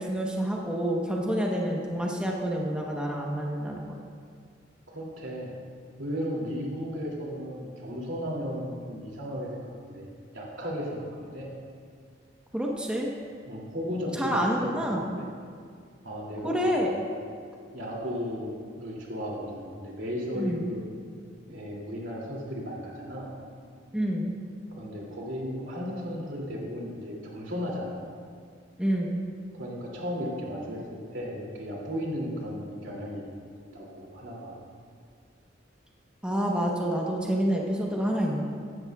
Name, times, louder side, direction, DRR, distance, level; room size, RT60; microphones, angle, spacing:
voice 1, 0.0-4.0 12.5-13.1 14.1-15.0 16.4-16.9 20.3-20.7 23.9-24.3 28.8-29.2 36.2-38.4, equal, 5° right, -2 dB, 1.0 m, -28 dB
voice 2, 4.9-5.5 6.0-10.1 10.3-11.5 13.4-14.8 15.2-15.3 16.0-16.8 17.7-20.8 21.5-23.3 24.7-28.1 29.6-33.3 33.7-34.5, equal, 85° right, -3 dB, 2.8 m, -35 dB
16.0 x 12.5 x 2.4 m, 2.1 s
head